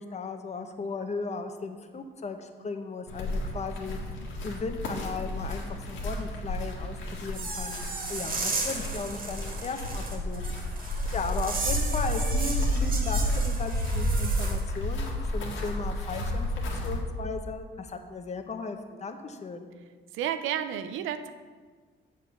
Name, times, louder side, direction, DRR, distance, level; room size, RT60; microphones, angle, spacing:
voice 1, 0.0-4.0 4.4-7.8 8.1-10.6 11.1-19.7, left 4 dB, 35° left, 6 dB, 0.9 m, -36 dB
sound 1, 3.1-17.0, equal, 80° left, 1.8 m, -31 dB
sound 2, 7.3-14.6, right 3 dB, 45° right, 1.9 m, -35 dB
voice 2, 20.1-21.3, right 9 dB, 90° right, 10 dB, 0.6 m, -31 dB
7.5 x 5.0 x 7.1 m, 1.5 s
cardioid pair, 90°, 20 cm